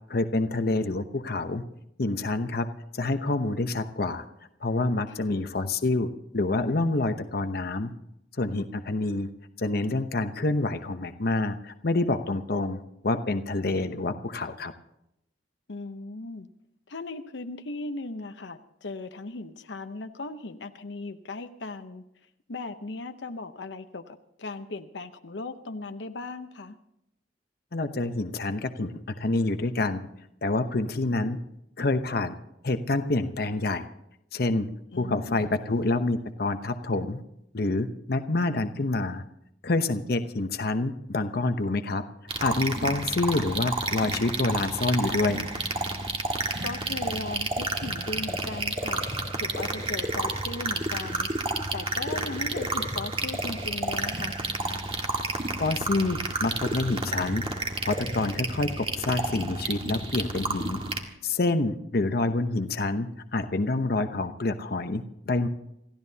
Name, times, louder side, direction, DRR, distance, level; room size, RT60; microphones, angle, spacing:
voice 1, 0.1-1.6 2.0-2.7 2.9-4.2 4.6-6.1 6.3-7.9 8.4-9.3 9.6-14.7 27.7-30.0 30.4-31.4 31.8-32.3 32.6-33.8 34.3-34.7 35.0-37.2 37.5-39.2 39.6-42.0 42.4-45.4 55.6-57.4 57.8-60.8 61.2-65.5, left 2 dB, 60° left, 8 dB, 0.9 m, -27 dB
voice 2, 5.1-5.4 15.7-16.5 16.9-22.0 22.5-26.8 34.9-35.4 46.6-49.0 49.4-51.3 51.7-54.4, left 3 dB, 90° left, 8 dB, 0.9 m, -37 dB
sound 1, 42.3-61.0, right 2 dB, 35° right, 1.7 m, -30 dB
28.0 x 14.5 x 2.8 m, 0.80 s
head